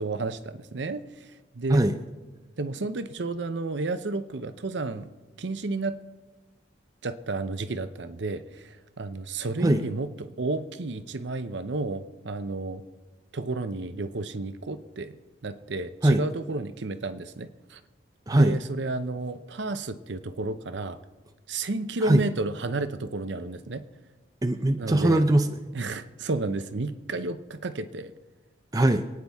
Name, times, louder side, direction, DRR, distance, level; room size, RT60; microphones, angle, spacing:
voice 1, 0.0-1.8 2.6-5.1 5.4-6.0 7.0-12.8 13.3-15.2 15.4-17.8 18.3-21.0 21.5-23.8 24.8-25.2 25.7-28.1, right 3 dB, 70° right, 11 dB, 0.8 m, -32 dB
voice 2, 24.4-25.6 28.7-29.0, right 1 dB, 20° right, 6 dB, 0.5 m, -21 dB
26.0 x 9.5 x 3.6 m, 1.2 s
head